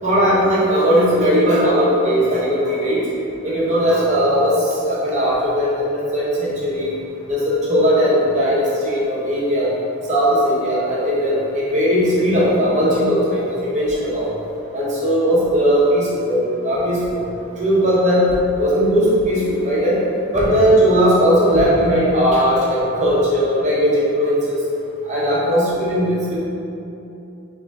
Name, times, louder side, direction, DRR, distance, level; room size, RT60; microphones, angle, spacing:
voice 1, 0.0-3.0 3.4-4.5 4.8-6.9 7.3-9.7 10.1-14.3 14.7-17.2 17.6-18.3 18.6-20.0 20.3-24.6 25.1-26.4, equal, 35° right, -8 dB, 1.0 m, -18 dB
4.0 x 3.1 x 3.5 m, 2.8 s
head